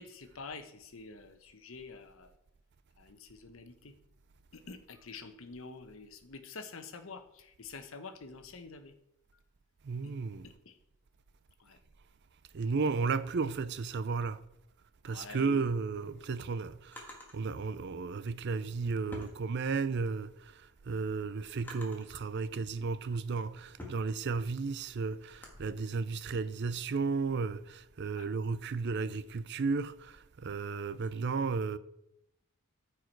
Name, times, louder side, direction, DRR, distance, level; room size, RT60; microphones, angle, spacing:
voice 1, 0.0-2.3 3.0-3.9 4.5-8.9 10.0-10.1 10.4-10.8 11.6-11.8 15.1-15.6 28.1-28.3, left 4 dB, 65° left, 1.0 m, -47 dB
voice 2, 9.8-10.5 12.5-14.4 15.0-31.8, right 4 dB, 50° right, 0.5 m, -34 dB
Drawer open or close, 15.9-17.4 18.4-20.0 20.5-22.2 22.8-25.7, left 1 dB, 10° left, 1.6 m, -51 dB
14.0 x 4.7 x 4.6 m
head